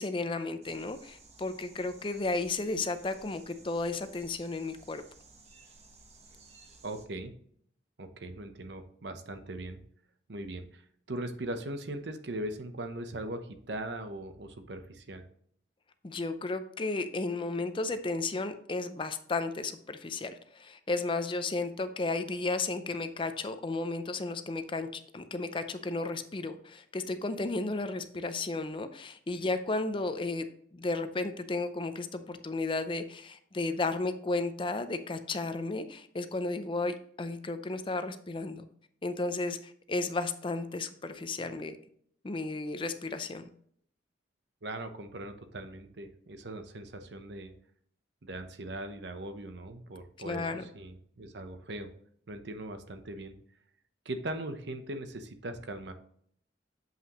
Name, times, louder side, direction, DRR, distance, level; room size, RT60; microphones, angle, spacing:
voice 1, 0.0-5.0 16.0-38.7 39.0-41.8 42.2-43.5 50.2-50.7, left 3 dB, 30° left, 10 dB, 0.5 m, -33 dB
sound 1, 0.6-7.1, right 3 dB, 35° right, 1.1 m, -56 dB
voice 2, 6.8-7.3 8.0-9.8 10.3-10.8 11.1-15.2 44.6-47.5 48.2-50.5 50.7-51.9 52.3-53.4 54.0-55.9, right 1 dB, 70° right, 8 dB, 0.8 m, -40 dB
7.6 x 5.6 x 3.0 m, 0.63 s
head